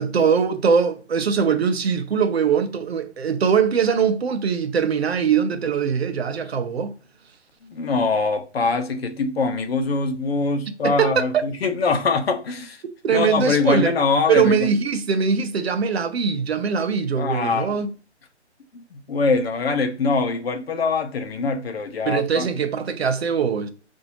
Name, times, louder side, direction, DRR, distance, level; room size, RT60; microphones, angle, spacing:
voice 1, 0.0-6.9 10.8-11.4 13.0-13.9 14.3-17.9 22.0-23.7, right 6 dB, 60° right, 0.7 m, -21 dB
voice 2, 7.6-12.8 13.1-14.7 17.2-17.7 18.7-22.5, left 4 dB, 60° left, 0.8 m, -23 dB
5.7 x 2.7 x 2.8 m
figure-of-eight pair, 135°, 35 cm